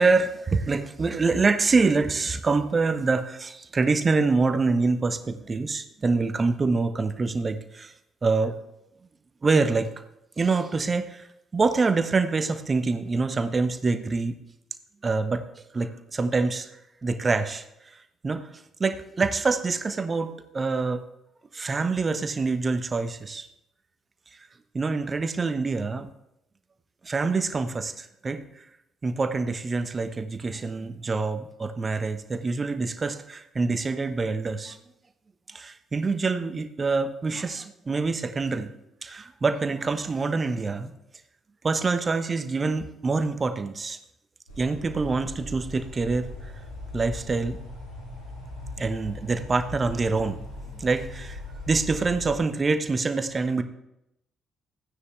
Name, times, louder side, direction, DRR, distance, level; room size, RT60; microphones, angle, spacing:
voice 1, 0.0-7.9 8.2-8.5 9.4-9.9 10.4-11.3 11.5-14.4 15.0-15.4 15.7-16.7 17.0-17.6 18.2-18.5 18.8-21.0 21.5-23.5 24.7-26.1 27.0-28.6 29.0-34.8 35.5-38.7 39.0-40.9 41.6-44.0 44.6-46.3 46.9-47.6 48.8-50.4 50.7-51.4 51.7-53.6, right 4 dB, 30° right, 9 dB, 1.1 m, -25 dB
sound 1, 44.5-52.3, left 2 dB, 85° left, 4.2 m, -39 dB
15.0 x 9.7 x 3.5 m, 0.82 s
figure-of-eight pair, 45°, 0 cm